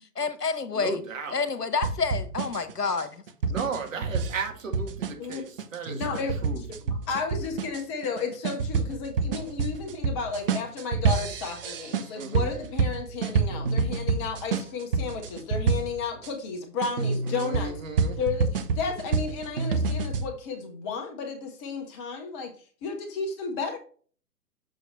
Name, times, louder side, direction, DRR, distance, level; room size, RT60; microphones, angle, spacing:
voice 1, 0.2-1.0 1.3-3.2, left 5 dB, 80° left, 1.2 m, -28 dB
voice 2, 0.7-1.4 3.5-6.0 6.4-6.6 12.2-12.5 17.2-18.2, right 5 dB, 55° right, 2.1 m, -35 dB
sound 1, 1.8-16.3 16.8-20.3, right 5 dB, 35° right, 0.8 m, -28 dB
voice 3, 5.8-6.3 7.1-17.7 18.2-22.5 22.8-23.8, left 5 dB, 15° left, 0.9 m, -33 dB
7.0 x 6.1 x 3.0 m
figure-of-eight pair, 125°, 47 cm